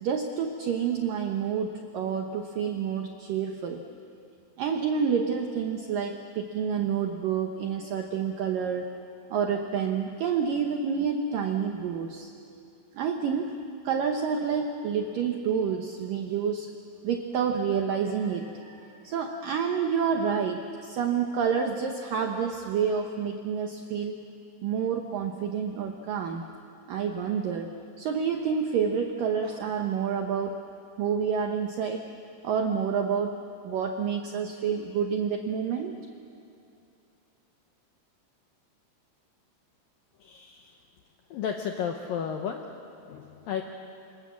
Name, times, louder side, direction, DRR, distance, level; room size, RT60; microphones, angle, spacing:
voice 1, 0.0-3.8 4.6-8.9 9.3-12.3 12.9-13.6 13.8-16.7 17.0-24.2 24.6-26.5 26.9-30.6 31.0-32.1 32.4-35.9, right 6 dB, 80° right, 4 dB, 2.0 m, -28 dB
voice 2, 40.2-40.8 41.3-42.7 43.1-43.6, left 7 dB, 75° left, 3 dB, 2.1 m, -33 dB
27.5 x 25.5 x 7.4 m, 2.6 s
omnidirectional pair, 5.5 m